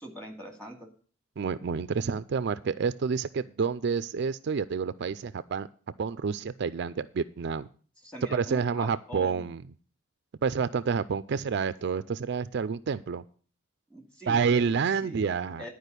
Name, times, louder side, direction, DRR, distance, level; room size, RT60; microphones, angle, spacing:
voice 1, 0.0-0.9 8.0-9.4 13.9-14.6 15.0-15.3 15.6-15.7, right 1 dB, 5° left, 2 dB, 2.3 m, -42 dB
voice 2, 1.4-5.7 6.0-7.7 8.3-9.6 10.4-13.2 14.3-15.6, right 5 dB, 60° right, 14 dB, 0.4 m, -29 dB
11.0 x 4.9 x 8.2 m, 0.42 s
head